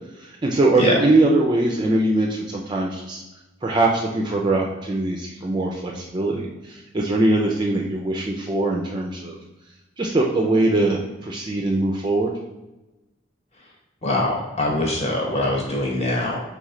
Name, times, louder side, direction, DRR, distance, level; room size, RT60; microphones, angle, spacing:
voice 1, 0.2-3.2 3.6-9.4 10.0-12.3, right 2 dB, 25° right, -1 dB, 0.4 m, -22 dB
voice 2, 14.0-16.4, left 1 dB, 35° left, -2 dB, 1.0 m, -23 dB
3.6 x 3.1 x 3.6 m, 1.0 s
head